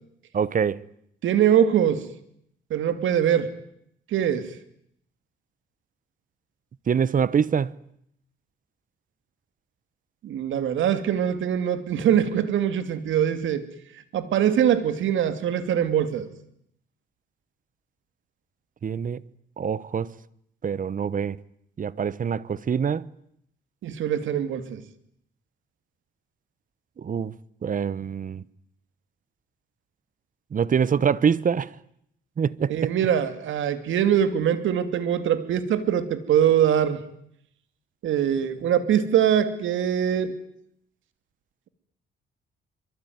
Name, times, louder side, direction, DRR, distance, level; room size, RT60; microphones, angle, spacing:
voice 1, 0.3-0.8 6.9-7.7 18.8-19.2 19.6-20.1 20.6-21.4 21.8-23.1 27.0-27.3 27.6-28.4 30.5-31.7 32.4-32.9, right 7 dB, 40° right, 1.1 m, -24 dB
voice 2, 1.2-2.0 2.7-3.5 4.1-4.5 10.2-13.6 14.1-16.3 23.8-24.8 32.7-37.0 38.0-40.3, right 9 dB, 75° right, 2.8 m, -23 dB
24.5 x 24.0 x 9.6 m
cardioid pair, 90°, 20 cm